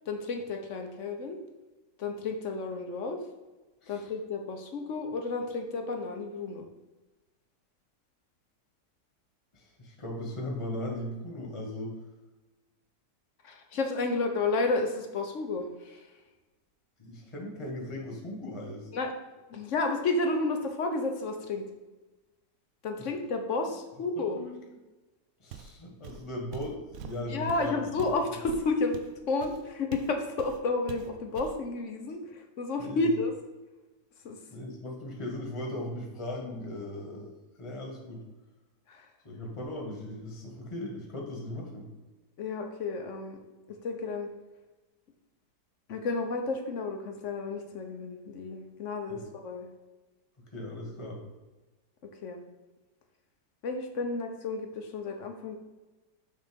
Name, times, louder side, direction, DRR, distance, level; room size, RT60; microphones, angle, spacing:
voice 1, 0.1-1.4 2.0-3.2 3.9-6.6 13.4-16.2 18.9-19.1 19.5-21.6 22.8-24.4 27.3-29.0 29.3-33.3 34.2-34.4 38.9-39.1 42.4-43.4 43.7-44.3 45.9-49.7 52.0-52.4 53.6-55.6, left 3 dB, 55° left, 4 dB, 1.0 m, -31 dB
voice 2, 9.5-11.9 17.0-18.9 24.2-24.5 25.4-27.8 32.8-33.1 34.5-37.3 37.6-38.2 39.2-41.9 49.1-49.2 50.5-51.2, left 1 dB, 20° left, 0 dB, 1.4 m, -38 dB
Walk footsteps, 25.5-25.8 26.0-30.1 30.4-30.6 30.9-31.6, right 8 dB, 70° right, 0.9 m, -45 dB
6.5 x 3.9 x 5.1 m, 1.2 s
omnidirectional pair, 1.8 m